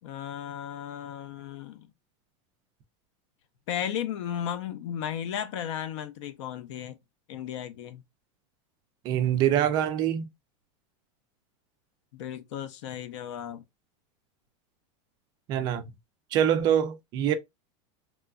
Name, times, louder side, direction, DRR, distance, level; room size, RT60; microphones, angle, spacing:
voice 1, 0.0-1.9 3.7-7.0 7.3-8.0 12.1-13.6, left 9 dB, 65° left, 0.6 m, -35 dB
voice 2, 9.0-10.3 15.5-15.9 16.3-17.3, right 10 dB, 25° right, 0.3 m, -24 dB
3.0 x 2.3 x 2.3 m
supercardioid pair, 170°, 16 cm